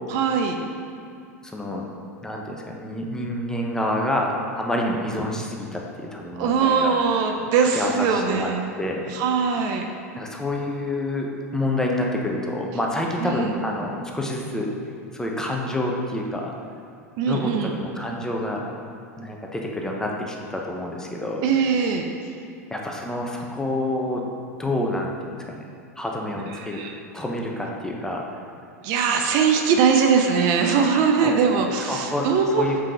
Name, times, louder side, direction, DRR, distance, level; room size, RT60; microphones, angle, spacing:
voice 1, 0.1-0.6 6.4-8.6 9.1-9.9 13.2-13.5 17.2-17.7 21.4-22.0 26.6-26.9 28.8-32.7, right 6 dB, 50° right, 4 dB, 0.6 m, -21 dB
voice 2, 1.5-1.9 2.2-4.3 4.5-6.9 7.6-8.5 8.8-9.0 10.1-11.3 11.5-14.7 15.1-16.5 17.3-18.6 19.2-21.8 22.7-24.2 24.6-25.6 26.0-26.8 27.1-28.2 31.1-31.3 31.8-32.3 32.6-32.8, left 1 dB, 5° left, -1 dB, 0.9 m, -28 dB
5.6 x 4.9 x 5.0 m, 2.5 s
hypercardioid pair, 90°, 9 cm